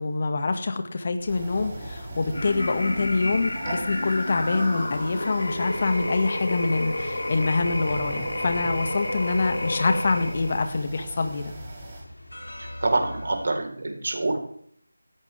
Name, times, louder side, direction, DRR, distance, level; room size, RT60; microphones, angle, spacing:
voice 1, 0.0-11.5, left 3 dB, 40° left, 7 dB, 1.9 m, -25 dB
sound 1, 1.2-13.5, left 1 dB, 90° left, 3.3 m, -43 dB
sound 2, 1.3-12.0, right 1 dB, 20° right, 4.0 m, -40 dB
sound 3, 2.3-10.7, left 2 dB, 65° left, 3.3 m, -31 dB
voice 2, 12.8-14.4, right 2 dB, 50° right, 2 dB, 4.2 m, -26 dB
18.0 x 15.0 x 3.5 m, 0.63 s
figure-of-eight pair, 165°, 0 cm